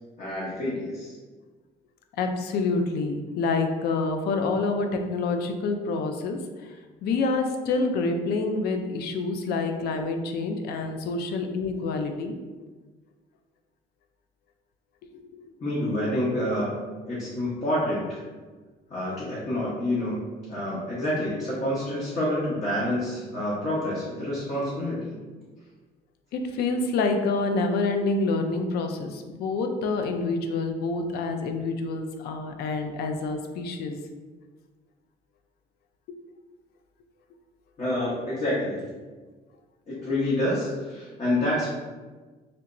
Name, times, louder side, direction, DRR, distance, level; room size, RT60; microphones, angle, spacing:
voice 1, 0.2-1.1 15.6-16.8 17.1-18.2 18.9-20.2 20.5-25.1 37.8-38.9 39.9-41.7, left 1 dB, 45° left, -8 dB, 1.0 m, -28 dB
voice 2, 2.2-6.8 7.0-12.3 15.3-15.4 26.3-34.0, left 3 dB, 70° left, 5 dB, 0.4 m, -27 dB
3.3 x 2.9 x 2.5 m, 1.4 s
cardioid pair, 110°, 17 cm